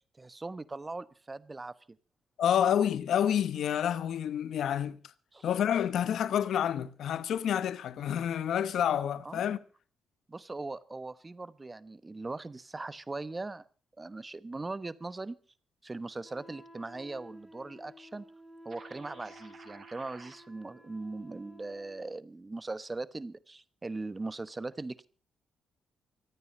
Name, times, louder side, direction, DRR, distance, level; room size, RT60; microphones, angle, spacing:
voice 1, 0.2-1.7 5.3-5.5 9.2-9.4 10.3-13.6 14.0-15.4 15.8-18.2 18.6-25.1, right 3 dB, 25° right, 1.0 m, -40 dB
voice 2, 2.4-5.0 5.4-9.6, left 9 dB, 75° left, 0.9 m, -28 dB
Wind instrument woodwind instrument, 16.2-22.2, equal, ahead, 3.9 m, -53 dB
sound 1, 18.7-20.3, right 4 dB, 60° right, 6.1 m, -52 dB
24.5 x 9.3 x 5.3 m
cardioid pair, 80°, 0 cm